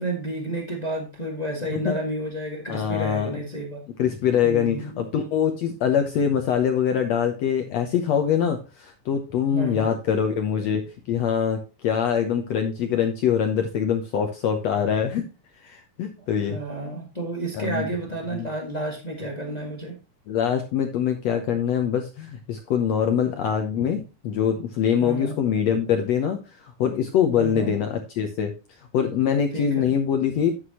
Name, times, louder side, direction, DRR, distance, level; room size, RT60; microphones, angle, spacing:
voice 1, 0.0-3.8 4.4-5.0 9.5-9.9 16.5-20.0 25.0-25.4 27.3-27.7 29.5-29.9, right 1 dB, 25° left, 1 dB, 0.8 m, -31 dB
voice 2, 2.7-3.3 4.0-10.8 11.1-15.2 15.6-16.6 17.5-17.9 18.3-18.5 20.3-28.5 28.9-30.5, left 8 dB, 70° left, 5 dB, 1.7 m, -24 dB
9.8 x 8.0 x 2.9 m, 0.30 s
omnidirectional pair, 4.0 m